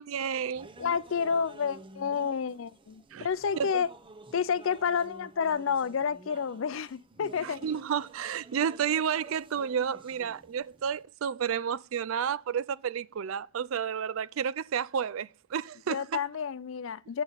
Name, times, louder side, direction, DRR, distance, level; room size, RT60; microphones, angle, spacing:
voice 1, 0.0-0.7 3.1-3.3 3.6-3.8 7.4-16.0, right 7 dB, 80° right, 0.4 m, -31 dB
sound 1, 0.5-11.0, right 2 dB, 25° right, 0.8 m, -51 dB
voice 2, 0.8-3.9 4.3-7.7 15.9-17.2, left 6 dB, 70° left, 0.4 m, -30 dB
8.3 x 7.1 x 4.0 m
head